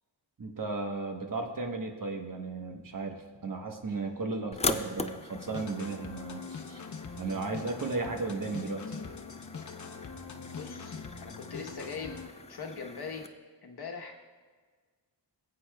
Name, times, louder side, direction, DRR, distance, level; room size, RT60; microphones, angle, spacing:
voice 1, 0.4-6.8 7.2-9.0, right 3 dB, 45° right, 3 dB, 1.1 m, -35 dB
sound 1, 4.5-13.3, left 3 dB, 15° left, 0.3 m, -41 dB
sound 2, 5.4-12.3, left 5 dB, 40° left, 0.8 m, -43 dB
voice 2, 10.6-10.9 11.2-12.1 12.5-13.3 13.6-14.2, left 5 dB, 60° left, 2 dB, 1.1 m, -40 dB
16.5 x 8.6 x 2.3 m, 1.5 s
wide cardioid pair, 100°, 44 cm